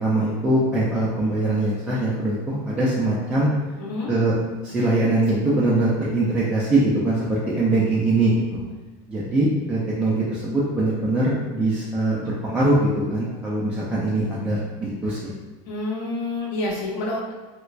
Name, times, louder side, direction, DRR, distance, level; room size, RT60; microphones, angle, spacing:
voice 1, 0.0-3.5 4.1-4.3 4.6-8.6 9.1-15.3, right 2 dB, 10° right, -7 dB, 0.3 m, -22 dB
voice 2, 3.8-4.1 15.7-17.3, left 2 dB, 55° left, -5 dB, 0.8 m, -28 dB
3.2 x 3.0 x 2.4 m, 1.2 s
cardioid pair, 175°, 15 cm